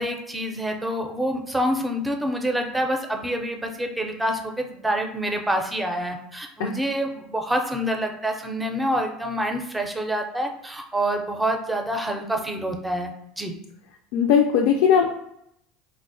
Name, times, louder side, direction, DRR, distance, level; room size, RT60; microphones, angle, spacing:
voice 1, 0.0-13.5, equal, 10° right, 4 dB, 0.4 m, -27 dB
voice 2, 14.1-15.1, left 7 dB, 80° left, 1 dB, 0.3 m, -19 dB
3.9 x 2.0 x 2.5 m, 0.75 s
supercardioid pair, 120°, 0 cm